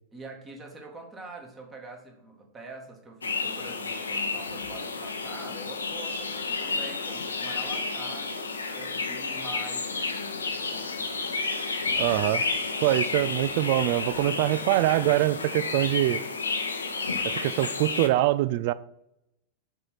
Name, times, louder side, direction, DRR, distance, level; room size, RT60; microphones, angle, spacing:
voice 1, 0.1-8.5 8.7-11.4, right 2 dB, 20° right, 2 dB, 1.8 m, -44 dB
sound 1, 3.2-18.1, left 4 dB, 75° left, 0.7 m, -31 dB
voice 2, 12.0-12.4 12.8-16.2 17.2-18.7, right 16 dB, 50° right, 15 dB, 0.3 m, -24 dB
6.6 x 4.4 x 5.7 m, 0.81 s
figure-of-eight pair, 90°, 0 cm